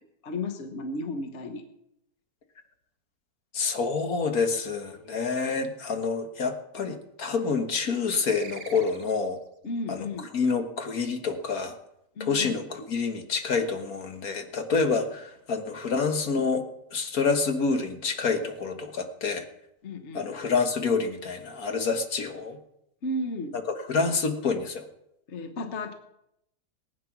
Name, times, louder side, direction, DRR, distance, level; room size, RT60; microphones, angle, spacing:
voice 1, 0.2-1.6 9.6-10.3 12.1-12.7 19.8-20.3 23.0-23.6 25.3-25.9, left 2 dB, 50° left, 7 dB, 1.4 m, -34 dB
voice 2, 3.5-9.4 9.9-10.1 10.3-11.7 12.2-16.6 16.9-19.4 20.1-22.6 23.9-24.9, left 4 dB, 70° left, 6 dB, 1.8 m, -27 dB
sound 1, 8.3-9.5, right 5 dB, 40° right, 1.4 m, -44 dB
19.0 x 9.1 x 6.0 m, 0.81 s
omnidirectional pair, 1.6 m